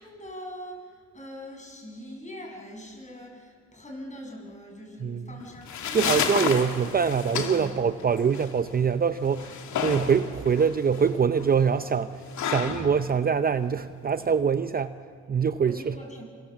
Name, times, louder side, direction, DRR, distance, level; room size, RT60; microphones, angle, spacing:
voice 1, 0.0-6.3 15.6-16.2, equal, 25° left, 1 dB, 7.2 m, -42 dB
voice 2, 5.0-5.4 5.9-12.1 12.4-14.9 15.3-16.0, right 6 dB, 30° right, 10 dB, 0.7 m, -24 dB
sound 1, 5.4-14.4, left 7 dB, 70° left, 2.6 m, -32 dB
27.0 x 26.5 x 7.4 m, 2.2 s
cardioid pair, 90°, 30 cm